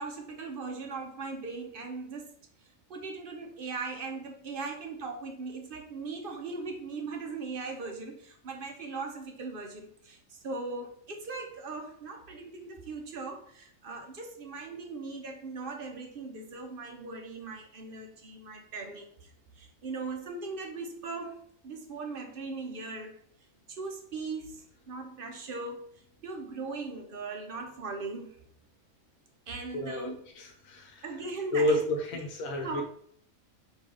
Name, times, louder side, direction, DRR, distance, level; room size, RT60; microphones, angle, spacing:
voice 1, 0.0-2.3 2.9-19.3 19.6-23.1 23.8-25.8 26.2-28.3 29.5-30.2 31.0-31.8 32.6-32.8, right 3 dB, 50° right, 3 dB, 0.7 m, -39 dB
voice 2, 29.7-31.0 31.5-32.8, left 1 dB, 85° left, 1 dB, 1.1 m, -30 dB
4.0 x 2.8 x 4.8 m, 0.62 s
omnidirectional pair, 1.4 m